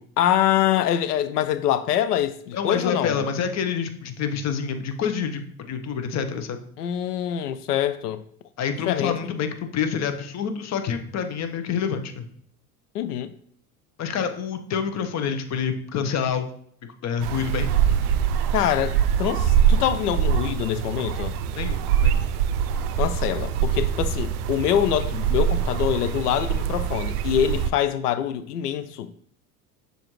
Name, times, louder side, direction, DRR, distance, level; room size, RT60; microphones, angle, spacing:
voice 1, 0.2-3.2 6.8-8.2 8.8-9.3 12.9-13.3 18.5-21.3 23.0-29.1, left 10 dB, 90° left, 0.5 m, -24 dB
voice 2, 2.5-6.6 8.6-12.3 14.0-16.5 17.0-17.7 21.6-22.2, left 7 dB, 35° left, 0.8 m, -27 dB
sound 1, 17.2-27.7, right 8 dB, 80° right, 0.5 m, -24 dB
6.7 x 2.6 x 3.0 m
hypercardioid pair, 80°, 45 cm